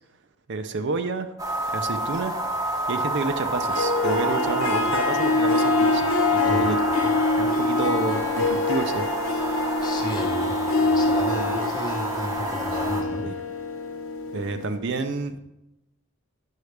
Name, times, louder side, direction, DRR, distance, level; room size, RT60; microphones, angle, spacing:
voice 1, 0.5-1.3 1.7-2.4 2.9-6.8 7.0-7.1 7.4-9.1 13.2-13.3 14.3-15.4, right 3 dB, 55° right, 8 dB, 0.5 m, -29 dB
sound 1, 1.4-13.0, right 1 dB, 15° right, 0.7 m, -29 dB
Harp, 3.6-14.8, left 3 dB, 70° left, 1.0 m, -25 dB
voice 2, 9.8-13.3, left 1 dB, 20° left, 2 dB, 0.9 m, -34 dB
9.5 x 6.4 x 3.3 m, 0.89 s
head